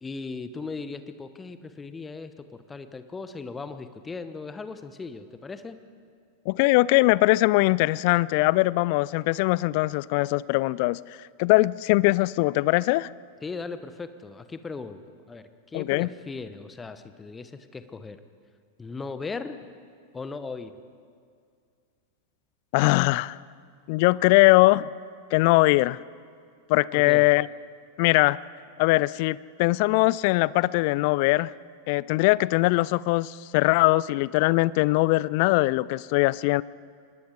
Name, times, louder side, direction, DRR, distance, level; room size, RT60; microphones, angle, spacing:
voice 1, 0.0-5.8 13.4-15.0 15.3-18.2 18.8-19.6 20.1-20.7 26.9-27.3, left 4 dB, 15° left, 11 dB, 1.2 m, -37 dB
voice 2, 6.5-13.1 15.7-16.1 22.7-23.4 23.9-24.9 25.3-26.0 26.7-27.5 28.0-28.4 28.8-31.5 31.9-36.6, left 21 dB, 45° left, 21 dB, 0.4 m, -21 dB
25.5 x 20.5 x 5.0 m, 2.2 s
figure-of-eight pair, 90°, 0 cm